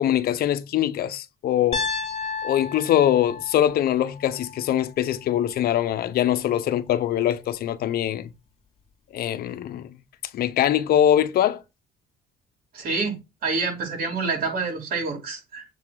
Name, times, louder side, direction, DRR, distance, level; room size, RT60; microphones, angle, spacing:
voice 1, 0.0-1.9 2.4-8.3 9.1-9.9 10.3-11.6, left 11 dB, 65° left, 0.9 m, -23 dB
Piano, 1.7-5.8, left 5 dB, 40° left, 2.4 m, -33 dB
voice 2, 12.7-15.7, right 4 dB, 60° right, 4.9 m, -27 dB
7.2 x 3.6 x 6.2 m
cardioid pair, 110°, 17 cm